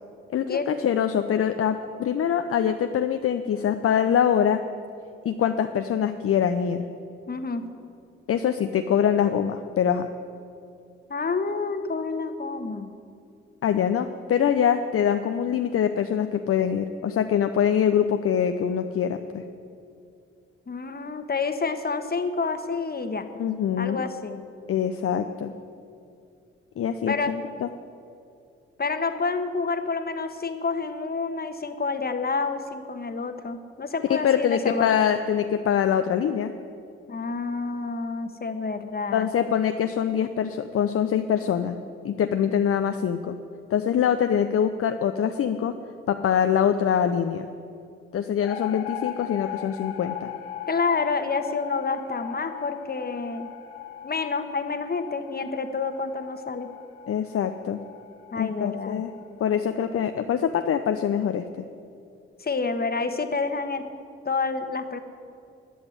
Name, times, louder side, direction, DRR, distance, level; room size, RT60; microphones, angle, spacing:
voice 1, 0.3-4.6 5.2-6.9 8.3-10.1 13.6-19.4 23.4-24.0 24.7-25.5 26.8-27.7 34.1-36.5 39.1-41.8 42.0-43.4 43.7-45.7 46.1-47.5 48.1-50.3 57.1-57.8 58.4-59.1 59.4-61.6, left 8 dB, 50° left, 8 dB, 0.7 m, -24 dB
voice 2, 7.3-7.7 11.1-12.9 20.7-23.3 23.8-24.4 27.1-27.3 28.8-34.9 37.1-39.3 50.7-53.5 54.0-56.7 58.3-59.0 62.4-63.9 64.2-65.0, left 4 dB, 30° left, 8 dB, 1.3 m, -28 dB
sound 1, 48.4-59.6, left 11 dB, 90° left, 0.6 m, -39 dB
11.0 x 8.0 x 9.9 m, 2.6 s
hypercardioid pair, 40°, 30 cm